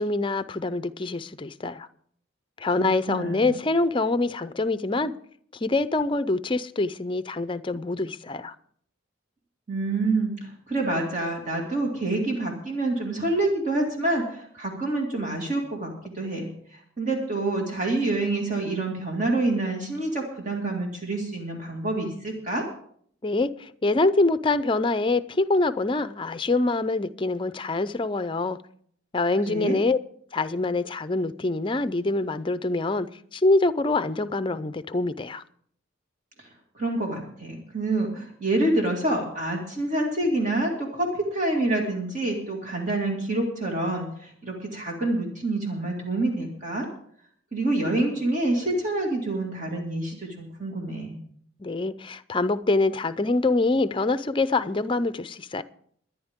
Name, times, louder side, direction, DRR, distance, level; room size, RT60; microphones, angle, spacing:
voice 1, 0.0-1.9 2.6-5.1 5.6-8.5 23.2-28.6 29.1-30.0 30.3-33.1 33.3-35.4 51.6-55.6, left 2 dB, 25° left, 0.5 m, -25 dB
voice 2, 2.8-3.5 9.7-22.7 29.5-29.8 36.4-36.5 36.7-46.9 47.5-51.2, right 2 dB, 40° right, 2.2 m, -27 dB
22.5 x 10.5 x 3.7 m
head